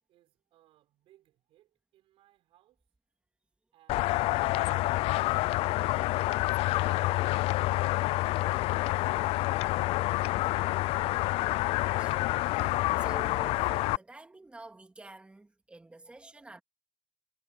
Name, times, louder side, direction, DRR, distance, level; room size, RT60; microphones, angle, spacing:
voice 1, 0.0-2.9 3.7-10.3, right 14 dB, 75° right, 5.7 m, -65 dB
sound 1, 3.9-14.0, left 18 dB, 85° left, 0.4 m, -28 dB
voice 2, 12.0-16.6, right 2 dB, 10° right, 2.7 m, -48 dB
cardioid pair, 140°, 10 cm